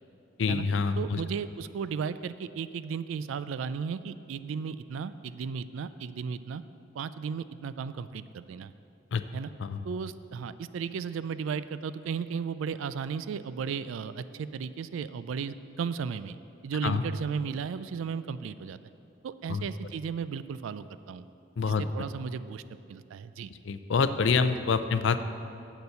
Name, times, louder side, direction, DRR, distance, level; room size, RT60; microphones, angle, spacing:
voice 1, 0.4-1.2 9.1-9.2 9.6-9.8 16.8-17.0 19.5-19.6 21.6-21.8 23.7-25.2, left 5 dB, 75° left, 11 dB, 0.4 m, -26 dB
voice 2, 1.0-6.6 6.9-8.7 9.3-9.5 9.8-16.4 16.6-18.8 19.2-21.2 21.6-22.6 22.9-23.5, right 6 dB, 85° right, 14 dB, 0.3 m, -35 dB
8.1 x 6.8 x 6.8 m, 2.6 s
head